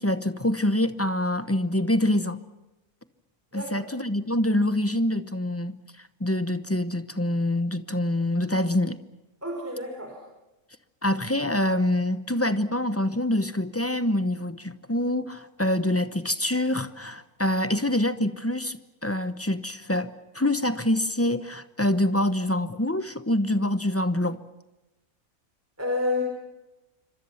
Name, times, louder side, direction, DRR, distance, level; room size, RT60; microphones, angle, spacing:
voice 1, 0.0-2.4 3.5-9.0 11.0-24.4, left 1 dB, 10° left, 0.8 m, -25 dB
voice 2, 3.5-3.9 9.4-10.2 25.8-26.2, left 2 dB, 10° right, 4.2 m, -29 dB
27.5 x 25.5 x 5.8 m
omnidirectional pair, 1.5 m